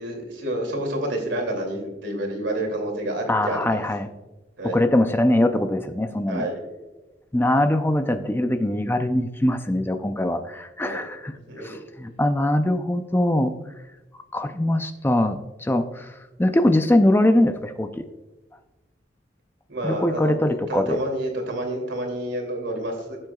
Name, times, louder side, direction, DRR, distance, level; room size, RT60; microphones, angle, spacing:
voice 1, 0.0-3.8 4.6-4.8 6.3-6.6 10.8-11.0 11.5-11.8 19.7-20.4 20.7-23.2, right 1 dB, 80° right, 1 dB, 2.7 m, -29 dB
voice 2, 3.3-4.1 4.7-6.5 7.3-13.5 14.3-16.1 16.4-18.0 19.8-21.0, left 1 dB, 10° left, 8 dB, 0.4 m, -22 dB
16.5 x 7.6 x 2.3 m, 1.1 s
head